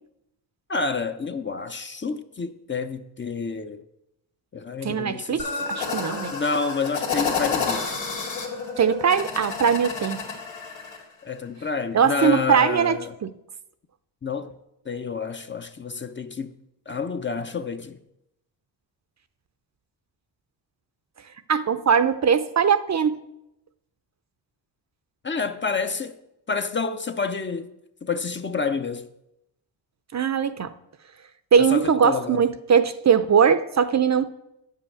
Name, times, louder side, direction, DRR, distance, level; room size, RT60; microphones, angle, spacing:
voice 1, 0.7-3.8 4.5-5.7 6.3-8.0 11.2-13.1 14.2-14.5 14.9-16.5 16.9-18.0 25.2-26.1 26.5-27.7 28.0-29.1 31.6-32.4, left 5 dB, 25° left, 0.6 m, -29 dB
voice 2, 4.8-6.3 8.8-10.2 11.9-13.3 21.5-23.2 30.1-30.7 31.5-34.3, right 7 dB, 40° right, 0.6 m, -21 dB
sound 1, 5.4-11.0, left 5 dB, 90° left, 2.5 m, -30 dB
9.1 x 5.6 x 7.1 m
cardioid pair, 80°, 45 cm